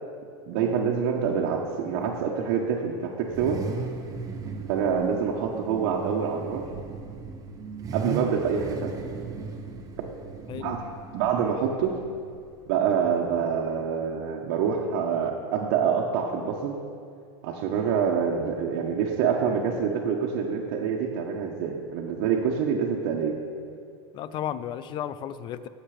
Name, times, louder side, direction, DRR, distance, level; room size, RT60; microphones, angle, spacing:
voice 1, 0.5-3.6 4.7-6.6 7.9-9.0 10.6-10.8 11.1-12.0 12.7-16.8 17.4-23.4, right 7 dB, 60° right, -3 dB, 1.3 m, -26 dB
Car / Idling / Accelerating revving vroom, 1.2-13.3, right 4 dB, 25° right, 1.1 m, -38 dB
voice 2, 24.1-25.7, left 10 dB, 35° left, 15 dB, 0.5 m, -33 dB
18.0 x 7.3 x 5.1 m, 2.3 s
supercardioid pair, 135°, 14 cm